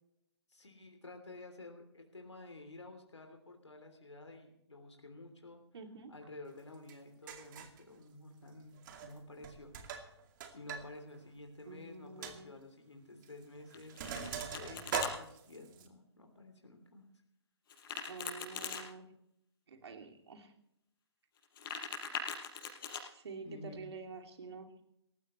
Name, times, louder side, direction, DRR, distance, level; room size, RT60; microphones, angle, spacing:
voice 1, 0.5-5.6 6.1-9.7 10.5-17.1 23.4-23.9, left 2 dB, 90° left, 4 dB, 3.2 m, -51 dB
voice 2, 5.7-6.1 11.7-12.5 18.1-19.1 19.7-20.5 23.1-24.7, right 4 dB, 70° right, 5 dB, 2.7 m, -48 dB
Sink (filling or washing), 6.9-7.0 7.3-7.8 8.8-9.2 9.4-10.8 11.1-11.2 11.7-11.8 12.2-12.4 13.2-13.4 13.7-15.9, right 7 dB, 45° right, 2.4 m, -41 dB
Domestic sounds home sounds, 13.7-15.1 17.7-18.8 21.4-23.0, left 5 dB, 50° left, 5.2 m, -41 dB
19.0 x 15.5 x 3.2 m, 0.76 s
figure-of-eight pair, 130°, 14 cm